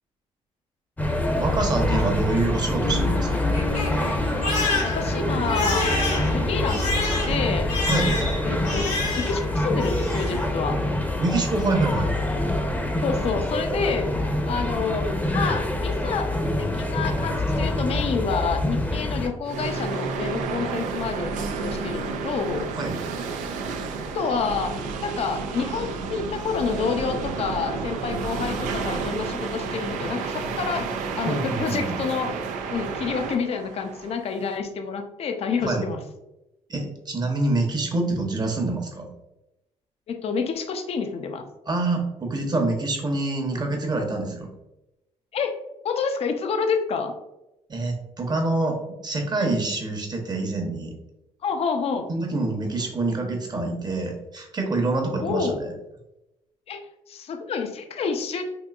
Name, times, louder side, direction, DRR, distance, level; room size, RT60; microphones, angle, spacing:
sound 1, 1.0-19.3, left 1 dB, 10° left, 0.7 m, -25 dB
voice 1, 1.4-3.5 7.9-8.2 11.2-12.1 22.8-23.0 31.3-31.9 35.6-35.8 36.7-39.1 41.7-44.5 47.7-48.8 49.0-50.9 52.1-55.7, right 2 dB, 35° right, 2 dB, 0.9 m, -26 dB
Crying sobbing, 2.5-9.5 9.8-10.4, left 2 dB, 80° left, 1.3 m, -29 dB
voice 2, 4.8-7.7 8.4-10.8 13.0-14.1 14.5-16.3 16.6-22.7 24.1-24.8 25.0-30.9 31.2-32.3 32.7-36.0 40.1-41.5 45.3-45.6 45.8-47.1 51.4-52.1 55.2-55.6 56.7-56.8 57.1-58.4, left 5 dB, 55° left, 6 dB, 0.5 m, -28 dB
sound 2, 19.4-34.6, right 4 dB, 90° right, 0.4 m, -31 dB
3.7 x 2.7 x 2.3 m, 0.92 s
cardioid pair, 75°, 13 cm